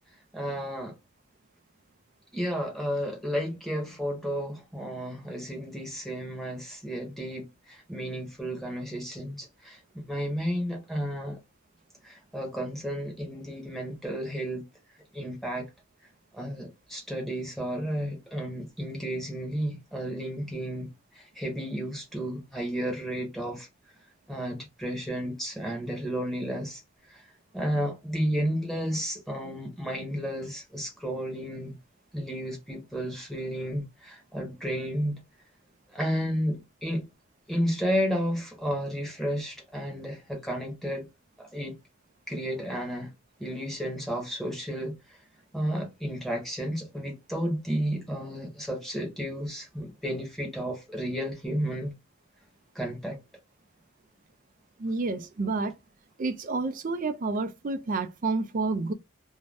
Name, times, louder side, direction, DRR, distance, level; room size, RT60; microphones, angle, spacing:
voice 1, 0.3-0.9 2.3-9.8 10.1-11.4 12.0-14.7 15.1-15.6 16.3-20.9 21.1-23.7 24.3-26.8 27.1-27.3 27.5-31.7 32.1-35.2 35.9-37.0 37.5-41.1 41.4-41.7 42.3-43.1 43.4-44.9 45.5-51.9 52.7-53.2, equal, ahead, 0.9 m, -32 dB
voice 2, 54.8-55.7 56.2-58.9, right 3 dB, 40° right, 0.4 m, -29 dB
2.6 x 2.1 x 3.3 m
head